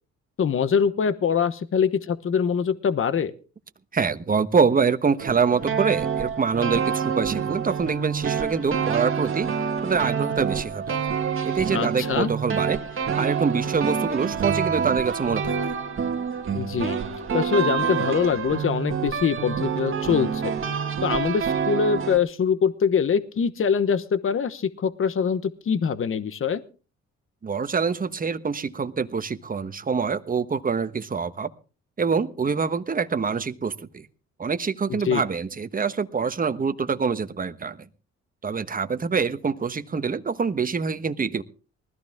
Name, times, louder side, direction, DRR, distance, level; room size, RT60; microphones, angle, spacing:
voice 1, 0.4-3.3 11.7-12.3 16.5-17.0 17.3-20.5 21.0-26.6 34.9-35.2, left 7 dB, 45° left, 13 dB, 1.1 m, -23 dB
voice 2, 3.9-9.5 9.8-11.1 11.4-12.8 13.2-15.5 27.4-31.5 32.0-34.1 34.4-37.8 38.4-41.4, right 5 dB, 30° right, 10 dB, 1.2 m, -25 dB
sound 1, 5.2-22.2, right 6 dB, 45° right, 1.9 m, -27 dB
20.0 x 14.0 x 3.6 m, 0.35 s
cardioid pair, 90°, 30 cm